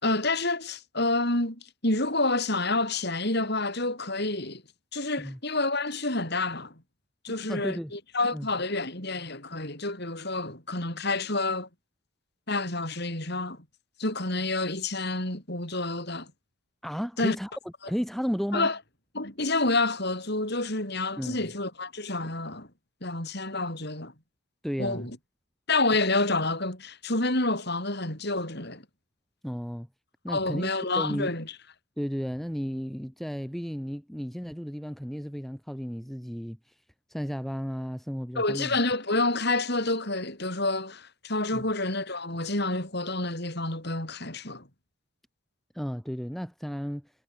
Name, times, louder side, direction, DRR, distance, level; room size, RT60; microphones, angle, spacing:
voice 1, 0.0-4.6 4.9-6.7 7.2-11.7 12.5-13.6 14.0-16.3 17.2-17.4 18.5-18.8 19.1-22.7 23.0-24.1 24.8-25.1 25.7-28.8 30.3-31.5 38.4-44.7, left 2 dB, 50° left, 6.3 m, -28 dB
voice 2, 7.3-7.9 8.3-8.5 16.8-17.5 17.9-18.7 21.2-21.4 24.6-25.1 29.4-29.9 30.2-31.3 32.0-36.6 37.1-38.8 41.5-41.6 45.7-47.1, equal, ahead, 3.3 m, -33 dB
head